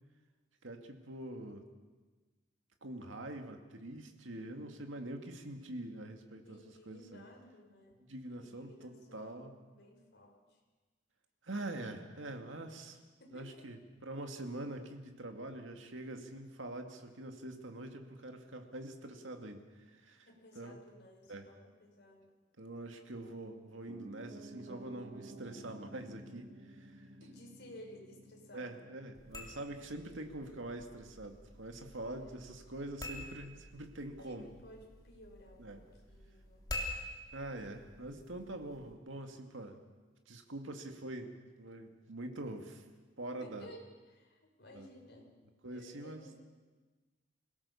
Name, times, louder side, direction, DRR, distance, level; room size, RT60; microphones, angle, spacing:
voice 1, 0.6-1.6 2.8-7.2 8.0-9.5 11.4-13.0 13.3-20.3 20.6-20.8 21.3-21.5 22.6-27.1 28.5-34.5 35.6-35.8 37.3-39.8 40.3-42.8 43.2-43.7 44.7-44.9 45.6-46.4, right 1 dB, 85° right, 4 dB, 2.2 m, -45 dB
voice 2, 6.5-8.0 8.4-10.6 13.2-13.7 20.3-22.3 27.2-28.7 32.2-32.4 34.2-36.7 43.4-43.8 44.1-45.3 45.7-46.4, left 1 dB, 60° left, 1 dB, 5.3 m, -56 dB
Piano, 23.9-33.9 34.2-34.3, right 1 dB, 50° right, 2.1 m, -55 dB
sound 1, 29.1-38.9, left 1 dB, 20° left, 3.3 m, -48 dB
26.0 x 17.5 x 7.1 m, 1.3 s
head